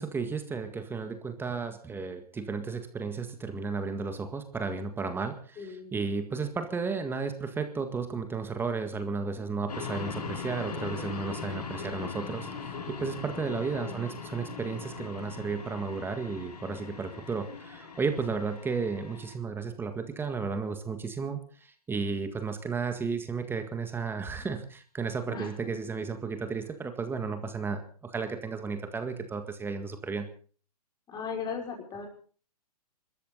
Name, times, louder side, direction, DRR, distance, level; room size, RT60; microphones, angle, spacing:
voice 1, 0.0-30.3, right 4 dB, 10° right, 7 dB, 1.8 m, -33 dB
voice 2, 5.6-5.9 13.5-14.1 25.3-25.5 31.1-32.1, left 5 dB, 20° left, 1 dB, 5.6 m, -38 dB
sound 1, 9.7-19.3, left 5 dB, 75° left, 4.1 m, -40 dB
25.5 x 13.5 x 4.0 m, 0.42 s
hypercardioid pair, 125°, 20 cm